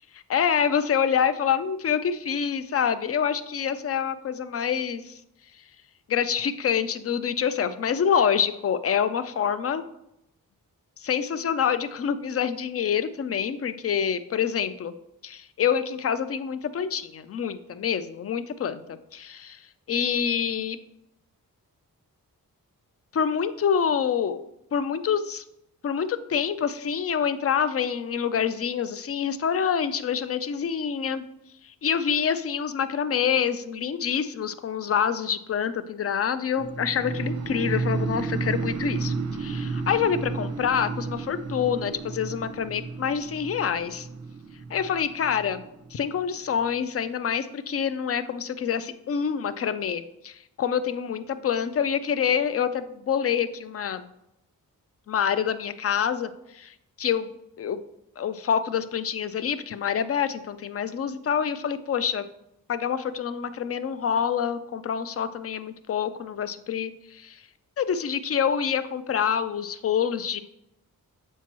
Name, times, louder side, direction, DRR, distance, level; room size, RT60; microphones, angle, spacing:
voice 1, 0.3-5.2 6.1-9.8 11.0-14.9 15.2-19.6 19.9-20.8 23.1-24.5 24.7-25.4 25.8-31.2 31.6-44.1 44.7-45.6 45.9-54.1 55.1-57.3 57.6-57.8 58.2-62.2 62.7-67.4 67.8-70.4, left 7 dB, 40° left, 12 dB, 0.4 m, -26 dB
sound 1, 36.6-46.5, right 4 dB, 50° right, 0.6 m, -32 dB
7.2 x 4.6 x 3.0 m, 0.81 s
wide cardioid pair, 95°, 36 cm